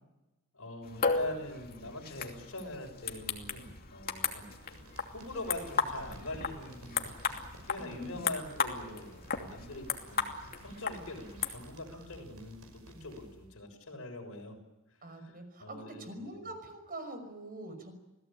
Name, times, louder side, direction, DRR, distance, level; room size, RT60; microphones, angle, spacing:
voice 1, 0.5-7.1 7.7-14.6 15.6-16.4, left 1 dB, 70° left, 3 dB, 6.6 m, -43 dB
sound 1, 0.8-11.6, left 5 dB, 45° left, 2.7 m, -36 dB
sound 2, 4.1-13.5, right 1 dB, 85° right, 5.7 m, -54 dB
voice 2, 7.8-8.3 15.0-17.9, right 1 dB, 40° right, 8 dB, 5.8 m, -44 dB
28.0 x 18.0 x 8.9 m, 1.0 s
head